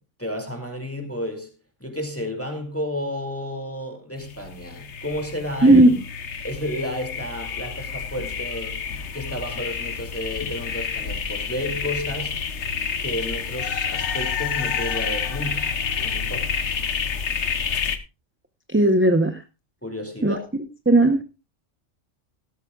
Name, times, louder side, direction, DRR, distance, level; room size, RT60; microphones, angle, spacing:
voice 1, 0.2-1.5 1.8-5.9 6.4-12.3 13.0-15.7 16.0-16.5 19.8-20.5, left 1 dB, 10° left, 2.3 m, -32 dB
sound 1, 4.2-18.0, left 6 dB, 65° left, 1.3 m, -29 dB
voice 2, 5.6-5.9 18.7-19.4 20.2-20.4 20.9-21.2, right 1 dB, 10° right, 0.7 m, -15 dB
17.0 x 13.0 x 2.3 m
omnidirectional pair, 1.3 m